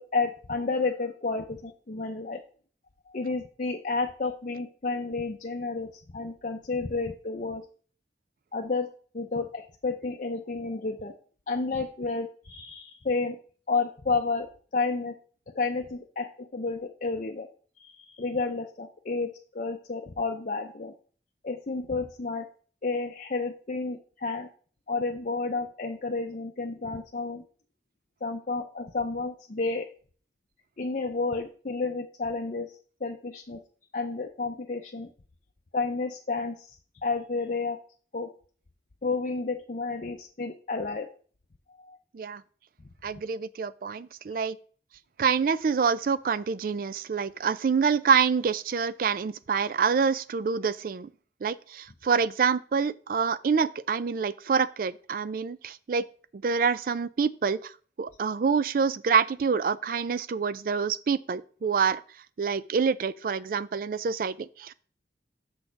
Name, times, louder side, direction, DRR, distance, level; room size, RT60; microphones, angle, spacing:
voice 1, 0.0-2.4 3.1-7.6 8.5-8.9 9.1-11.1 11.5-13.4 13.7-15.1 15.5-17.5 17.8-20.9 21.4-22.5 22.8-24.5 24.9-27.4 28.2-29.9 30.8-32.7 33.0-33.6 33.9-35.1 35.7-36.8 37.0-37.8 38.1-38.3 39.0-41.1 41.8-42.0, left 3 dB, 45° left, 0.6 m, -31 dB
voice 2, 43.0-44.6 45.2-51.1 51.4-56.0 56.3-57.7 58.0-62.0 62.4-64.7, right 6 dB, 50° right, 0.3 m, -26 dB
6.4 x 6.2 x 4.5 m
head